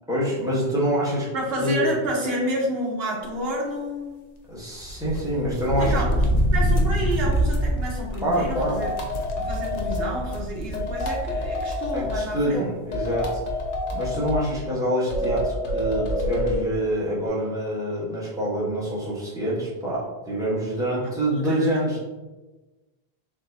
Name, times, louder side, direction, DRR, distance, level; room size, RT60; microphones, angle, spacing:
voice 1, 0.1-1.3 1.6-1.9 4.5-6.0 8.2-8.8 11.9-13.4 13.9-22.0, equal, 5° right, -8 dB, 1.0 m, -26 dB
voice 2, 1.3-4.3 5.8-6.2 6.5-8.9 9.4-12.7 21.0-21.1 21.5-21.8, right 1 dB, 60° right, -2 dB, 1.1 m, -29 dB
sound 1, 4.8-11.5 11.9-12.0 13.1-13.2 13.4-13.7, equal, 50° left, 0.5 m, -25 dB
sound 2, 8.6-10.1 10.7-12.2 12.9-14.4 15.1-16.6, left 1 dB, 80° left, 1.1 m, -27 dB
4.3 x 3.2 x 2.6 m, 1.2 s
omnidirectional pair, 1.2 m